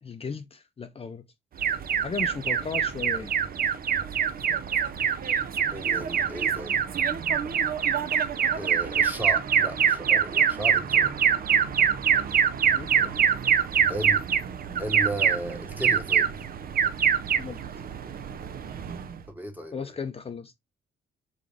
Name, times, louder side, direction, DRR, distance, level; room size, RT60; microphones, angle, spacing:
voice 1, 0.0-1.2 2.0-3.3 12.8-13.2 17.4-17.6 19.7-20.5, left 5 dB, 30° left, 0.6 m, -35 dB
Alarm, 1.6-19.2, right 7 dB, 50° right, 0.6 m, -25 dB
voice 2, 5.7-6.8 8.5-11.1 13.9-14.2 14.8-16.3 19.3-19.9, right 1 dB, 10° right, 1.4 m, -35 dB
3.9 x 3.7 x 3.5 m
cardioid pair, 90°, 20 cm